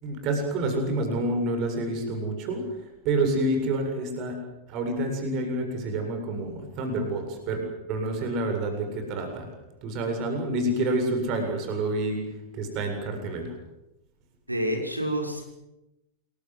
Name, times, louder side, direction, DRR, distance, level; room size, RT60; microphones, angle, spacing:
voice 1, 0.0-2.6 3.0-4.4 4.7-7.6 7.9-9.5 9.8-12.2 12.5-13.5, right 2 dB, 40° right, 4 dB, 7.7 m, -28 dB
voice 2, 14.5-15.4, equal, 85° right, 2 dB, 6.3 m, -28 dB
28.5 x 23.0 x 8.2 m, 0.94 s
figure-of-eight pair, 90°, 0 cm